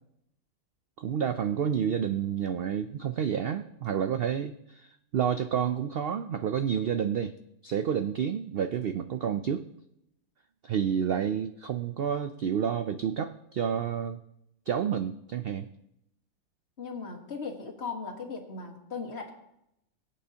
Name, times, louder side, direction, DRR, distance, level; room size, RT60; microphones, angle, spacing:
voice 1, 1.0-7.4 7.6-9.7 10.6-14.2 14.7-15.7, right 8 dB, 90° right, 10 dB, 0.5 m, -29 dB
voice 2, 16.8-19.3, left 4 dB, 45° left, 2 dB, 1.8 m, -38 dB
21.0 x 8.4 x 2.8 m, 0.82 s
omnidirectional pair, 1.6 m